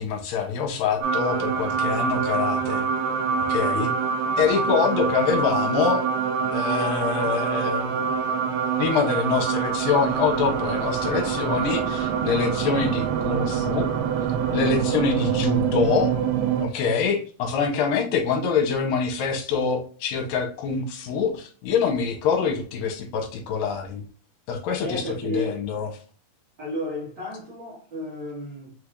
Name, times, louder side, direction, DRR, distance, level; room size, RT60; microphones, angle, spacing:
voice 1, 0.0-2.9 3.5-3.9 4.4-6.1 6.5-8.5 8.8-13.9 14.5-16.2 16.6-24.1 24.5-25.9, left 6 dB, 75° left, 2.4 m, -25 dB
sound 1, 1.0-16.7, right 7 dB, 85° right, 2.6 m, -25 dB
voice 2, 24.8-25.6 26.6-28.7, equal, 70° right, 1.1 m, -33 dB
5.9 x 3.3 x 2.4 m
omnidirectional pair, 4.5 m